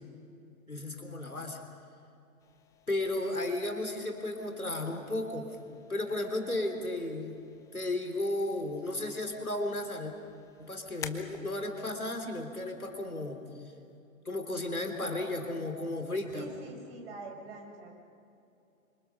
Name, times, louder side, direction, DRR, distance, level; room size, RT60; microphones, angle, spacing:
voice 1, 0.7-1.6 2.9-5.6 5.9-7.4 7.7-10.1 10.6-13.4 14.3-16.5, left 1 dB, 85° left, 4 dB, 3.7 m, -34 dB
sound 1, 2.4-14.0, left 8 dB, 10° left, 0.6 m, -53 dB
voice 2, 16.3-17.9, right 3 dB, 45° right, 1 dB, 6.4 m, -45 dB
27.5 x 25.5 x 5.8 m, 2.7 s
figure-of-eight pair, 115°, 42 cm